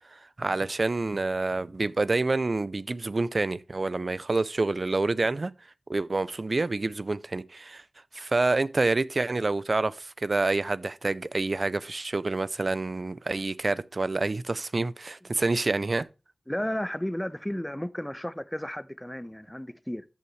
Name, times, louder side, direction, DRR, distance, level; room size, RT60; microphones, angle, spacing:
voice 1, 0.1-5.5 5.9-7.8 8.1-16.1, right 3 dB, 55° right, 0.5 m, -27 dB
voice 2, 16.5-20.0, equal, 10° left, 0.6 m, -33 dB
13.5 x 5.6 x 3.2 m
wide cardioid pair, 60°, 0 cm